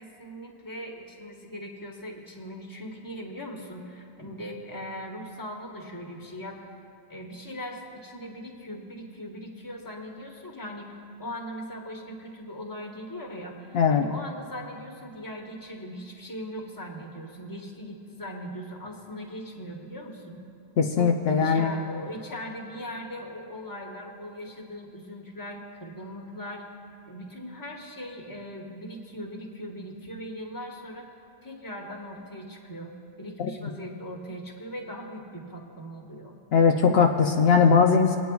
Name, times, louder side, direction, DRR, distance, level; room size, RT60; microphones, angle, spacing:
voice 1, 0.0-6.6 7.1-20.4 20.9-26.6 27.1-31.1 31.4-32.9 33.2-36.3, equal, 20° left, 0 dB, 1.2 m, -39 dB
voice 2, 13.7-14.1 20.8-21.7 33.4-33.5 36.5-38.2, left 6 dB, 75° left, 2 dB, 0.9 m, -20 dB
26.5 x 9.1 x 2.3 m, 2.4 s
omnidirectional pair, 1.1 m